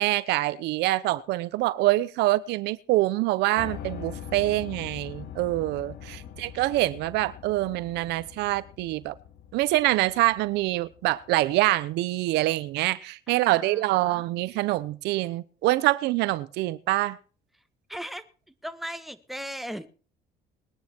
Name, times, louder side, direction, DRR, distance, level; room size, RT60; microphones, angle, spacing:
voice 1, 0.0-9.1 9.5-17.2, right 18 dB, 90° right, 0.9 m, -25 dB
Piano, 3.6-11.6, left 9 dB, 75° left, 2.9 m, -42 dB
voice 2, 13.3-14.2 17.9-18.3 18.6-19.9, equal, ahead, 1.7 m, -38 dB
21.0 x 10.5 x 4.5 m
cardioid pair, 110°, 17 cm